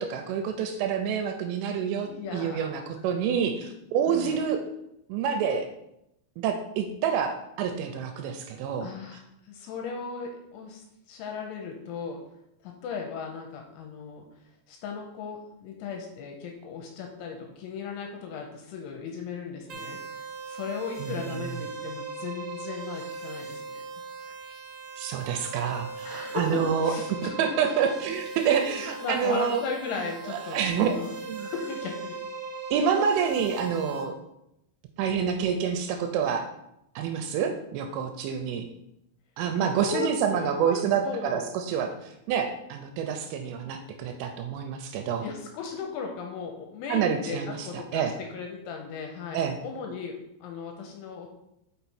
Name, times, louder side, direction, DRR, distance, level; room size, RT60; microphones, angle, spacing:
voice 1, 0.0-4.6 5.1-5.7 6.4-8.9 21.0-21.5 25.0-29.6 30.3-31.5 32.7-34.2 35.0-36.4 37.0-38.7 39.4-45.3 46.9-48.1 49.3-49.6, right 7 dB, 85° right, 6 dB, 2.9 m, -28 dB
voice 2, 2.0-2.8 4.1-4.4 8.8-12.2 12.6-14.3 14.7-24.0 26.1-27.5 28.9-31.1 31.4-32.2 39.6-40.8 41.0-41.4 45.2-51.4, left 6 dB, 80° left, 2 dB, 2.9 m, -37 dB
sound 1, 19.7-34.0, right 4 dB, 55° right, 1.3 m, -39 dB
6.2 x 5.7 x 4.2 m, 0.83 s
omnidirectional pair, 6.0 m